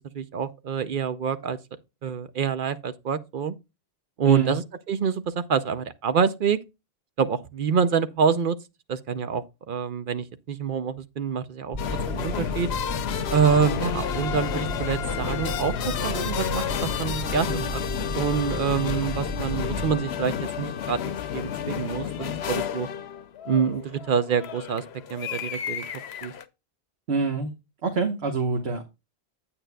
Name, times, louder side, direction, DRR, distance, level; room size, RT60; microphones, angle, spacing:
voice 1, 0.1-1.6 2.0-3.5 4.2-4.6 4.9-6.6 7.2-8.6 8.9-11.8 12.1-12.7 13.3-17.8 18.1-22.9 23.5-24.8 25.1-25.9 26.2-26.3, right 6 dB, 60° right, 0.7 m, -26 dB
voice 2, 4.2-4.6 27.1-27.5 27.8-28.8, right 4 dB, 75° right, 1.3 m, -25 dB
sound 1, 11.7-19.9, equal, 25° right, 1.3 m, -33 dB
sound 2, 11.8-26.4, left 8 dB, 80° left, 0.9 m, -31 dB
8.9 x 8.7 x 2.2 m
omnidirectional pair, 1.1 m